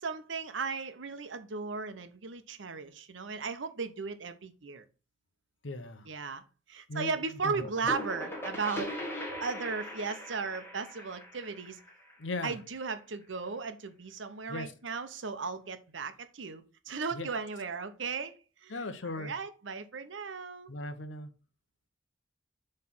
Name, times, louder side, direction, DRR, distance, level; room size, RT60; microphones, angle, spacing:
voice 1, 0.0-4.8 6.0-6.4 6.7-8.9 9.4-11.8 12.4-18.3 18.6-20.7, right 5 dB, 85° right, 0.8 m, -36 dB
voice 2, 5.6-6.1 6.9-7.1 7.4-7.7 12.2-12.5 14.5-14.7 17.1-17.3 18.7-19.3 20.7-21.3, left 2 dB, 85° left, 0.8 m, -37 dB
sound 1, 7.4-13.0, left 1 dB, 15° left, 1.6 m, -40 dB
7.4 x 3.3 x 5.9 m
head